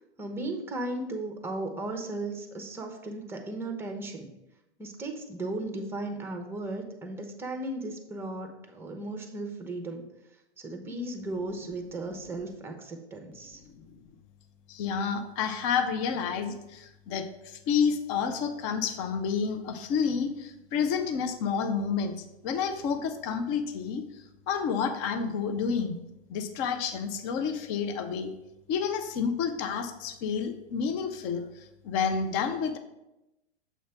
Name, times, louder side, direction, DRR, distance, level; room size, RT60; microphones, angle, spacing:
voice 1, 0.2-4.3 4.8-10.0 10.6-13.6, right 2 dB, 5° right, 4 dB, 0.8 m, -36 dB
voice 2, 13.7-14.0 14.7-24.0 24.5-25.9 26.3-28.3 28.7-32.8, left 6 dB, 30° left, 8 dB, 0.6 m, -30 dB
6.9 x 3.1 x 5.8 m, 0.92 s
figure-of-eight pair, 105°, 33 cm